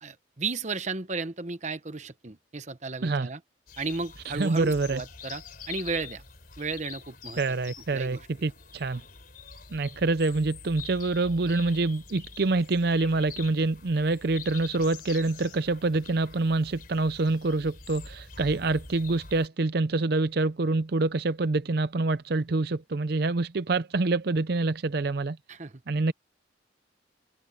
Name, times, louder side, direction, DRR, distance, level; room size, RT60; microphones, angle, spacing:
voice 1, 0.0-3.4 3.8-5.4 5.7-6.2 6.6-7.4 7.9-8.2 25.5-25.7, right 4 dB, 40° right, 1.0 m, -34 dB
sound 1, 3.7-19.5, left 5 dB, 50° left, 4.2 m, -45 dB
voice 2, 4.3-5.0 7.4-9.0 9.7-25.4 25.9-26.1, right 3 dB, 55° right, 0.6 m, -26 dB
head